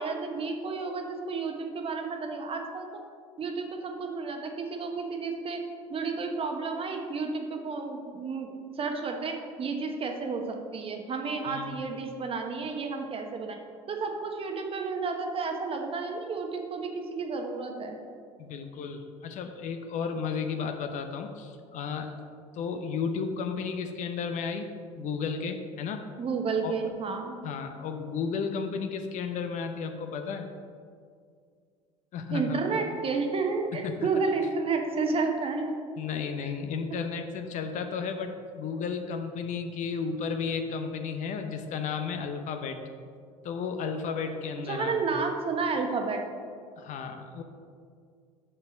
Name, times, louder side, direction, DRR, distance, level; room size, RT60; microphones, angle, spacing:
voice 1, 0.0-2.9 3.4-5.6 5.9-13.6 13.9-18.0 26.2-27.4 32.3-35.8 44.7-46.2, right 4 dB, 35° right, 3 dB, 1.0 m, -31 dB
voice 2, 18.4-22.1 22.5-26.1 26.6-26.9 27.4-30.5 32.1-32.6 33.8-34.1 36.0-42.8 43.4-44.9 46.8-47.4, left 5 dB, 45° left, 6 dB, 0.7 m, -33 dB
6.1 x 5.6 x 5.1 m, 2.2 s
figure-of-eight pair, 65°, 17 cm